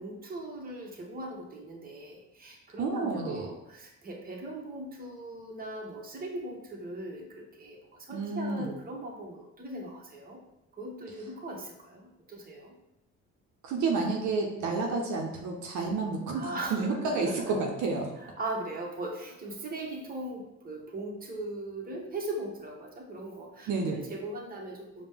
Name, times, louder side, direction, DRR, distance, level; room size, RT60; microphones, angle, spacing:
voice 1, 0.0-10.4 10.8-12.7 16.3-17.5 18.2-25.0, right 2 dB, 30° right, -1 dB, 0.9 m, -39 dB
voice 2, 2.8-3.5 8.1-8.7 13.6-18.1 23.7-24.0, right 3 dB, 70° right, 1 dB, 0.6 m, -30 dB
4.9 x 2.1 x 3.5 m, 0.90 s
cardioid pair, 90°, 30 cm